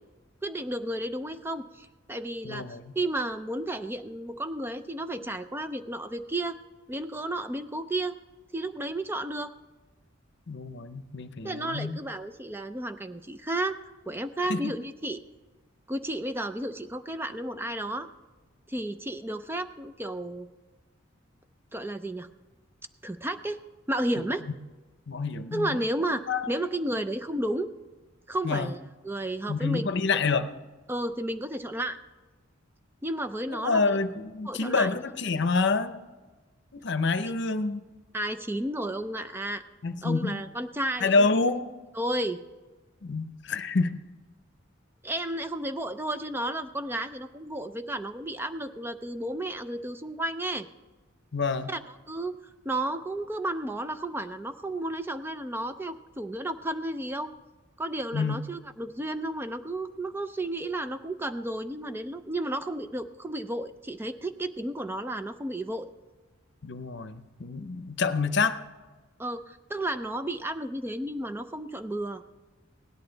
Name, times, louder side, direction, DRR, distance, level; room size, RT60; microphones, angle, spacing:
voice 1, 0.4-6.6 6.9-8.2 8.5-9.5 11.4-13.8 14.1-15.2 15.9-18.1 18.7-20.5 21.7-22.3 23.0-23.6 23.9-24.4 25.5-27.7 28.3-28.8 29.0-29.9 30.9-32.0 33.0-34.0 34.4-34.9 38.1-39.6 40.0-41.3 42.0-42.4 45.0-50.7 51.7-52.4 52.6-57.3 57.8-65.9 69.2-72.2, right 1 dB, 10° right, 10 dB, 0.4 m, -32 dB
voice 2, 2.4-2.9 10.5-12.0 14.5-14.7 24.2-24.3 25.1-25.8 26.1-26.4 26.9-27.0 28.4-28.7 29.5-30.5 33.5-36.1 36.7-37.8 39.8-40.4 41.0-41.7 43.0-44.0 51.3-51.7 58.1-58.4 66.6-68.6, left 4 dB, 60° left, 11 dB, 0.7 m, -27 dB
17.0 x 11.0 x 3.9 m, 1.3 s
head